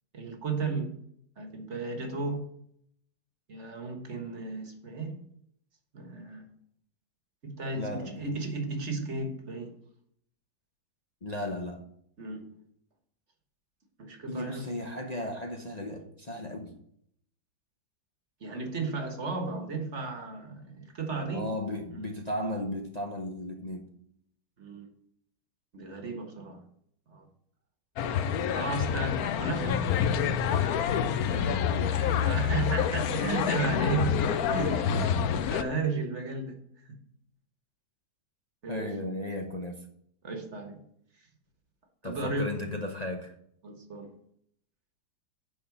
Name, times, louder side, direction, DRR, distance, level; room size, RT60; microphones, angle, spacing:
voice 1, 0.1-0.9 1.4-2.5 3.5-5.2 5.9-6.5 7.4-9.8 12.2-12.5 14.0-14.7 18.4-21.5 21.9-22.0 24.6-24.9 25.7-26.6 27.1-27.3 28.5-29.9 32.2-36.6 36.8-37.0 38.6-38.9 40.2-40.8 42.0-42.6 43.6-44.1, right 3 dB, 40° right, 5 dB, 1.6 m, -34 dB
voice 2, 7.7-8.4 11.2-11.8 14.3-16.7 21.3-23.9 31.3-32.1 32.5-32.7 33.8-34.2 38.7-39.9 42.0-43.3, left 1 dB, 35° left, 2 dB, 0.7 m, -35 dB
sound 1, 28.0-35.6, left 8 dB, 65° left, 1.0 m, -27 dB
9.7 x 4.3 x 7.1 m, 0.69 s
omnidirectional pair, 1.9 m